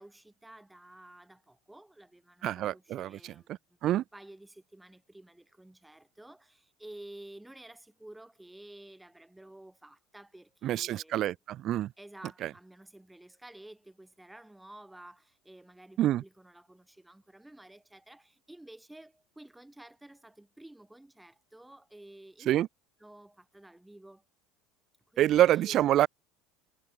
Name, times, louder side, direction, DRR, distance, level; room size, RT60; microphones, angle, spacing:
voice 1, 0.0-11.4 12.0-22.5 23.0-24.2 25.1-25.9, right 1 dB, 5° right, 4.3 m, -52 dB
voice 2, 2.4-3.1 3.8-4.0 10.6-11.9 16.0-16.2 22.5-22.7 25.2-26.1, right 13 dB, 50° right, 0.4 m, -26 dB
hypercardioid pair, 85°, 0 cm